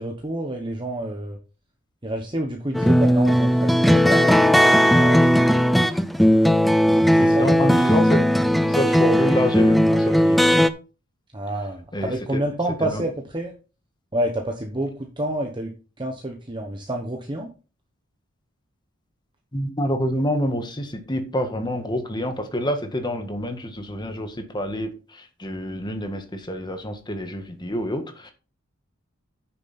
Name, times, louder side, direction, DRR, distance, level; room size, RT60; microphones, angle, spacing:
voice 1, 0.0-1.4 2.0-5.6 6.9-7.5 11.3-13.6 14.1-17.5, right 1 dB, 20° right, 2 dB, 1.1 m, -29 dB
sound 1, 2.7-10.7, equal, ahead, 0.5 m, -17 dB
voice 2, 7.2-8.2 8.7-10.5 11.9-12.4 12.8-13.0 19.5-28.3, equal, 20° left, 6 dB, 1.6 m, -27 dB
9.6 x 7.0 x 4.3 m, 0.34 s
head